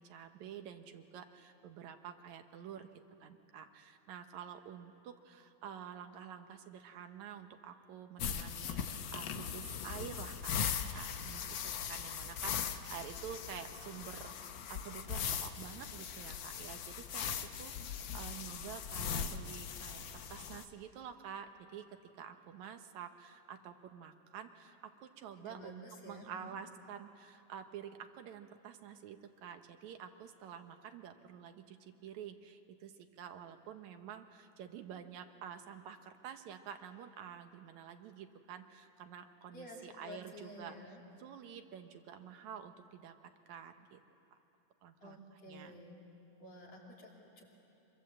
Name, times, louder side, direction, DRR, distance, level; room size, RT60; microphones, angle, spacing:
voice 1, 0.0-2.9 3.2-11.4 11.9-40.8 41.2-43.2 43.5-44.0 44.3-44.4 44.8-45.7, right 8 dB, 75° right, 7 dB, 2.2 m, -49 dB
sound 1, 8.2-20.6, left 7 dB, 85° left, 1.0 m, -40 dB
voice 2, 25.4-26.6 39.5-41.0 45.0-46.0 46.4-47.5, left 1 dB, 55° left, -2 dB, 4.2 m, -51 dB
24.5 x 24.0 x 7.7 m, 2.8 s
omnidirectional pair, 3.5 m